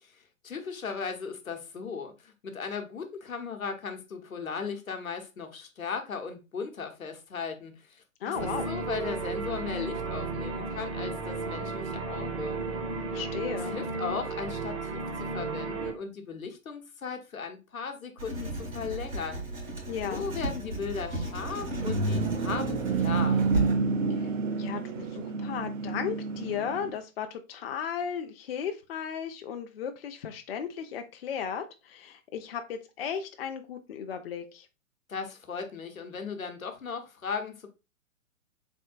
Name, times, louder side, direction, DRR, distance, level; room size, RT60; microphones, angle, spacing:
voice 1, 0.0-12.6 13.7-19.4 20.1-23.4 35.1-37.7, left 5 dB, 80° left, 0.9 m, -37 dB
voice 2, 8.2-8.7 13.1-13.8 19.9-20.3 24.1-24.3 24.6-34.7, left 7 dB, 50° left, 0.5 m, -35 dB
sound 1, 8.3-15.9, right 4 dB, 25° right, 0.4 m, -34 dB
Writing, 18.2-23.7, right 2 dB, 85° right, 1.6 m, -35 dB
sound 2, 21.4-27.0, right 4 dB, 65° right, 0.6 m, -29 dB
3.6 x 3.5 x 2.4 m
figure-of-eight pair, 115°, 40 cm